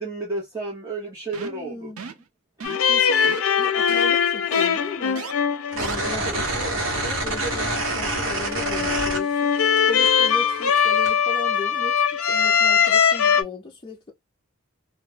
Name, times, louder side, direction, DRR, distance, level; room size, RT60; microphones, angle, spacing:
voice 1, 0.0-1.9 6.1-6.5, right 2 dB, 15° right, 0.6 m, -32 dB
sound 1, 1.3-1.6 2.0-2.2 2.6-2.9 3.2-3.4 3.9-4.0 4.5-4.7 5.2-5.3 5.8-6.0, right 5 dB, 85° right, 0.6 m, -35 dB
voice 2, 1.4-2.2 2.9-5.2 5.7-9.5 9.9-14.1, left 3 dB, 25° left, 0.4 m, -37 dB
sound 2, 2.6-13.4, left 7 dB, 80° left, 0.5 m, -22 dB
sound 3, 5.7-9.8 10.1-11.1, right 2 dB, 65° right, 0.9 m, -27 dB
2.2 x 2.1 x 3.1 m
head